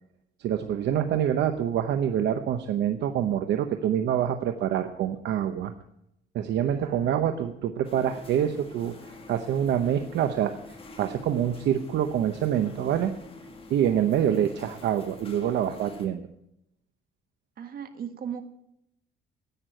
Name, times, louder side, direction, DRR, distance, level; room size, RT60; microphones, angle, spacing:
voice 1, 0.4-5.7 6.3-10.6 11.0-13.1 13.7-16.3, right 10 dB, 70° right, 8 dB, 0.9 m, -26 dB
voice 2, 6.6-7.2 14.1-14.4 17.6-18.4, right 8 dB, 50° right, 7 dB, 1.6 m, -38 dB
sound 1, 7.8-16.1, left 2 dB, 30° left, 2.2 m, -47 dB
11.0 x 9.5 x 9.0 m, 0.81 s
cardioid pair, 130°, 19 cm